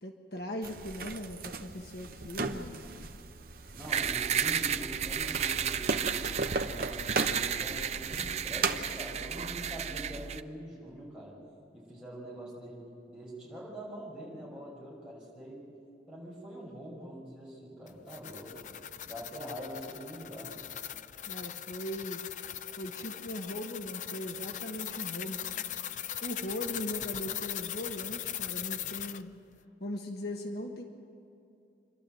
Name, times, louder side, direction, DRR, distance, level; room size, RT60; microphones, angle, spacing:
voice 1, 0.0-2.8 21.2-22.2 22.8-25.6 26.2-29.3 29.8-30.8, left 1 dB, 65° left, 3 dB, 1.4 m, -39 dB
sound 1, 0.6-8.8, right 3 dB, 55° right, 0.9 m, -37 dB
voice 2, 3.7-6.0 6.5-11.4 11.7-12.8 13.1-15.6 16.1-18.7 19.1-20.5, equal, 5° right, -6 dB, 5.7 m, -44 dB
sound 2, 3.9-10.4, right 8 dB, 40° right, 0.4 m, -33 dB
sound 3, 17.9-29.2, left 11 dB, 45° left, 0.4 m, -39 dB
28.0 x 12.0 x 7.8 m, 2.6 s
head